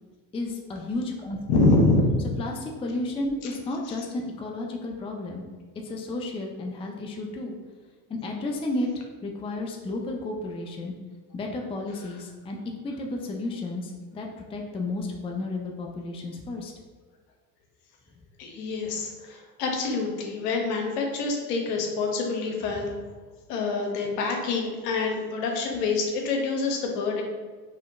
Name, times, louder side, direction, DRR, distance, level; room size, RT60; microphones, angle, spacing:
voice 1, 0.3-1.7 2.4-5.4 5.8-7.5 8.1-8.9 9.2-10.9 11.3-12.6 12.8-16.7, left 2 dB, 15° left, 1 dB, 0.4 m, -32 dB
voice 2, 1.5-2.1 3.4-3.5 3.8-3.9 12.0-12.2 18.4-22.9 23.5-27.2, left 3 dB, 85° left, 1 dB, 0.8 m, -26 dB
4.3 x 2.8 x 2.5 m, 1.4 s
supercardioid pair, 80°, 46 cm